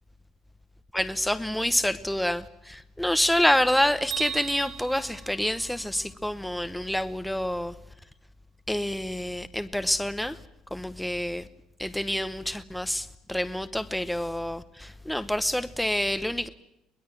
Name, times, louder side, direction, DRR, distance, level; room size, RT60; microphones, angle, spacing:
voice 1, 0.9-7.7 8.7-10.4 10.7-11.4 11.8-16.5, left 1 dB, ahead, 0.9 m, -27 dB
Bell, 4.1-6.1, right 10 dB, 60° right, 3.8 m, -38 dB
23.0 x 20.0 x 9.2 m
cardioid pair, 150°, 0 cm